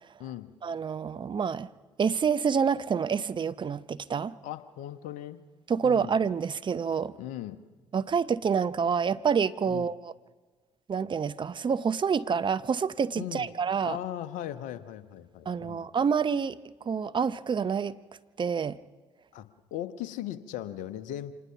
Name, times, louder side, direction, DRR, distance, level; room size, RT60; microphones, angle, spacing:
voice 1, 0.6-1.7 2.0-4.4 5.7-7.1 7.9-10.1 10.9-14.0 15.5-16.6 16.9-18.0 18.4-18.8, right 6 dB, 35° right, 0.7 m, -27 dB
voice 2, 4.4-5.4 5.8-6.1 7.2-7.6 9.7-9.9 13.2-13.5 13.8-15.9 19.3-21.3, left 12 dB, 65° left, 1.2 m, -38 dB
26.0 x 19.5 x 5.9 m
hypercardioid pair, 55°, 14 cm